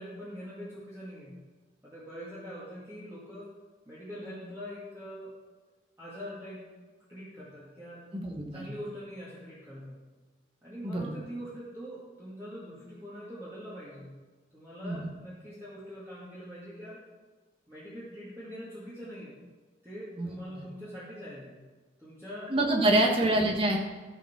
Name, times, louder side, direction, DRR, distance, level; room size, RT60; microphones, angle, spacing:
voice 1, 0.0-1.4 1.8-3.5 3.9-5.3 6.0-6.6 7.1-8.1 8.5-10.0 10.6-14.2 14.5-17.0 17.7-19.4 19.8-21.6 22.0-22.5 22.9-23.3, equal, 15° right, -10 dB, 2.1 m, -43 dB
voice 2, 8.1-8.6 10.8-11.1 14.8-15.1 20.2-20.3 22.5-23.8, right 1 dB, 30° right, 0 dB, 1.5 m, -26 dB
14.0 x 5.1 x 6.0 m, 1.3 s
head